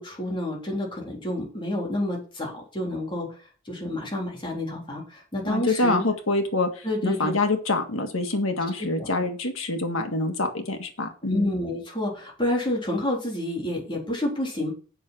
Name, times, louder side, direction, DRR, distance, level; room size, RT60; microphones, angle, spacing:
voice 1, 0.0-3.3 3.7-6.0 6.8-7.3 8.8-9.1 11.3-14.7, left 1 dB, 25° left, -2 dB, 3.6 m, -29 dB
voice 2, 5.4-11.5, left 2 dB, 90° left, 5 dB, 1.9 m, -26 dB
7.6 x 6.4 x 6.0 m, 0.38 s
head